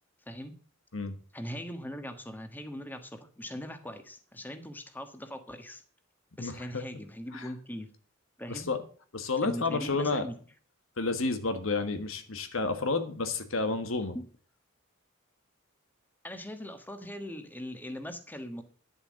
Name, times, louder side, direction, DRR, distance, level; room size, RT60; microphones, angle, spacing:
voice 1, 1.3-5.8 6.4-7.9 8.4-8.7 9.4-10.3 14.1-14.2 16.2-18.6, equal, 10° left, 8 dB, 1.3 m, -40 dB
voice 2, 6.4-6.8 7.3-7.5 8.5-8.8 9.1-10.2 11.0-14.2, left 3 dB, 75° left, 9 dB, 1.4 m, -30 dB
10.5 x 7.0 x 6.4 m, 0.41 s
head